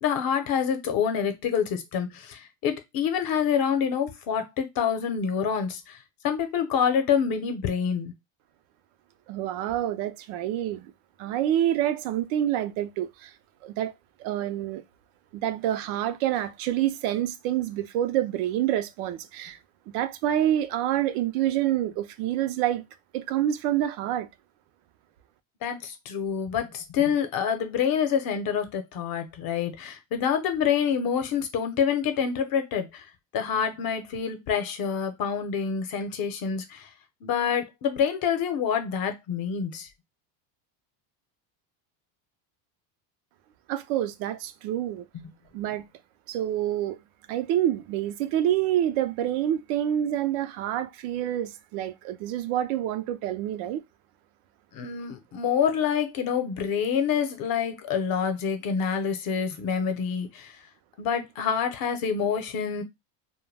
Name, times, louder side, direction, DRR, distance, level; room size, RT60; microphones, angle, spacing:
voice 1, 0.0-6.0 6.2-8.1 25.6-33.1 33.3-36.9 37.2-39.9 45.1-45.2 54.7-60.6 61.0-62.8, left 7 dB, 50° left, 0.7 m, -27 dB
voice 2, 9.3-10.9 11.2-13.3 13.6-13.9 14.2-14.8 15.3-19.6 19.9-22.8 23.1-24.3 43.7-45.1 45.5-45.8 46.3-47.0 47.3-53.8, right 12 dB, 75° right, 0.5 m, -27 dB
2.2 x 2.1 x 3.2 m
supercardioid pair, 115°, 44 cm